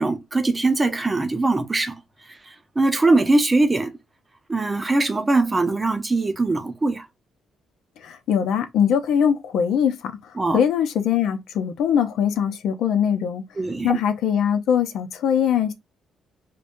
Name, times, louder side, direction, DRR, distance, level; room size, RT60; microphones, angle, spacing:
voice 1, 0.0-1.9 2.8-3.9 4.5-7.1 10.4-10.6 13.6-14.0, right 2 dB, 20° right, 0.7 m, -21 dB
voice 2, 8.0-10.1 10.5-13.4 13.8-15.7, left 8 dB, 80° left, 0.6 m, -21 dB
4.9 x 2.2 x 2.6 m
cardioid pair, 90°, 0 cm